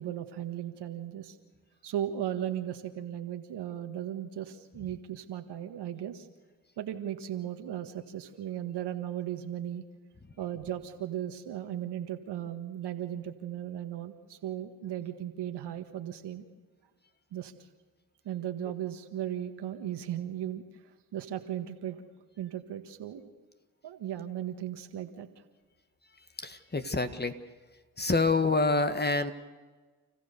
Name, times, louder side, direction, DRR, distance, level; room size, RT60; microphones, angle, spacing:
voice 1, 0.0-1.4 1.8-6.3 6.8-9.8 10.4-16.4 17.3-17.5 18.3-20.7 21.1-22.0 22.4-23.3 23.8-25.3, right 11 dB, 70° right, 8 dB, 1.8 m, -36 dB
voice 2, 26.4-27.3 28.0-29.3, left 3 dB, 25° left, 9 dB, 1.8 m, -27 dB
30.0 x 15.0 x 6.8 m, 1.3 s
supercardioid pair, 45°, 42 cm